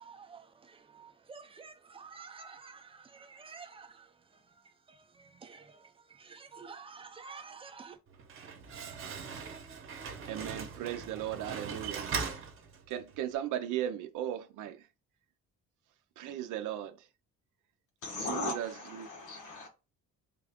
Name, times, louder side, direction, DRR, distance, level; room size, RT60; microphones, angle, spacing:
voice 1, 0.0-8.0, right 5 dB, 20° right, 0.4 m, -51 dB
Slam, 8.1-13.2, right 5 dB, 45° right, 0.8 m, -40 dB
voice 2, 10.3-12.2 12.9-14.8 16.2-17.1 18.2-19.1, right 11 dB, 90° right, 0.5 m, -37 dB
voice 3, 18.0-19.7, left 3 dB, 80° left, 1.3 m, -38 dB
3.5 x 2.4 x 3.4 m
cardioid pair, 150°, 30 cm